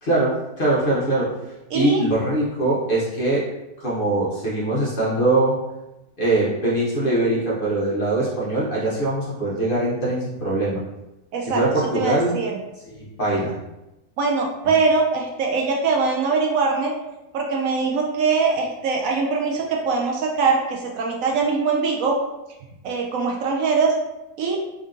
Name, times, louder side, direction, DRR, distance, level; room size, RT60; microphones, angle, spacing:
voice 1, 0.0-1.3 1.7-3.5 3.8-5.6 6.2-10.8 11.4-12.3 12.9-13.5, right 2 dB, 40° left, -6 dB, 1.0 m, -22 dB
voice 2, 1.7-2.0 11.3-12.6 14.2-16.9 17.3-22.2 22.8-23.9 24.4-24.6, right 4 dB, 70° right, 0 dB, 0.9 m, -22 dB
3.6 x 2.6 x 3.6 m, 0.96 s
omnidirectional pair, 1.6 m